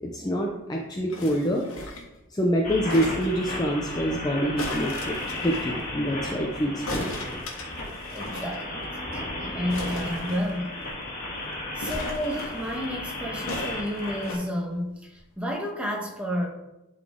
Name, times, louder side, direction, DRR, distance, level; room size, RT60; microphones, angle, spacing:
voice 1, 0.0-1.6 2.3-7.1, equal, 20° left, 0 dB, 0.6 m, -26 dB
sound 1, 1.1-2.2 2.9-3.6 4.6-5.7 6.9-8.6 8.8-8.9 9.1-9.3 9.7-10.9 11.8-12.7 13.5-14.4 15.2-15.3, left 1 dB, 70° left, 1.5 m, -37 dB
sound 2, 2.6-14.3, left 1 dB, 35° left, 1.7 m, -34 dB
voice 2, 7.8-8.8 9.1-10.7 11.7-16.5, equal, 5° right, -1 dB, 1.2 m, -31 dB
11.0 x 4.1 x 3.6 m, 0.96 s
head